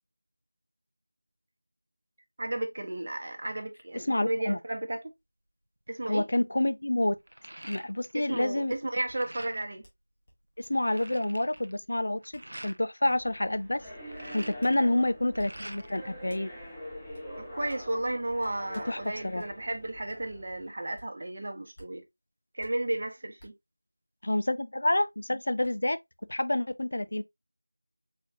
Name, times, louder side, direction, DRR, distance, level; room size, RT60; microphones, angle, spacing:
voice 1, 2.4-5.1 5.9-6.2 8.1-9.8 14.8-15.1 17.4-22.0 22.5-23.5, right 1 dB, 35° right, 0.9 m, -33 dB
voice 2, 3.9-4.6 6.1-7.2 7.6-8.7 10.6-13.8 14.3-16.5 18.9-19.4 24.2-26.0 26.3-27.2, left 1 dB, 50° left, 0.5 m, -28 dB
sound 1, 5.9-6.1 6.6-8.3 8.6-9.8 10.3-10.4 10.6-12.8 13.8-16.1 16.4-17.3, right 1 dB, 60° right, 0.4 m, -46 dB
sound 2, 8.7-8.8 9.0-9.2 9.8-10.0 10.2-11.1 11.5-11.7 12.3-12.5 13.1-13.2 13.8-14.0 14.6-14.7 15.4-15.5 16.3-16.4 17.1-17.3 17.7-19.5 20.1-20.2 20.9-21.1 21.7-21.9 22.6-22.7 23.4-23.5 25.0-25.1 25.6-25.7, equal, 25° left, 1.6 m, -54 dB
sound 3, 13.1-20.7, equal, ahead, 0.8 m, -45 dB
4.3 x 4.1 x 2.4 m
figure-of-eight pair, 170°, 0 cm